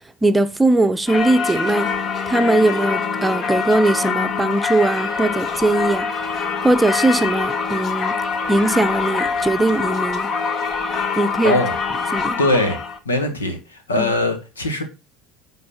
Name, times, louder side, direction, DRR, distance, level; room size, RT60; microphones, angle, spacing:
voice 1, 0.2-1.9 2.3-6.2 6.6-8.2 8.5-10.3 11.2-11.6 12.1-12.4 14.0-14.1, right 2 dB, 10° right, 0.7 m, -19 dB
Singing / Church bell, 1.1-13.0, left 5 dB, 45° left, 1.2 m, -24 dB
voice 2, 11.4-11.8 12.0-12.8 13.0-14.8, left 2 dB, 90° left, 1.4 m, -21 dB
9.5 x 3.9 x 5.5 m
hypercardioid pair, 70°, 0 cm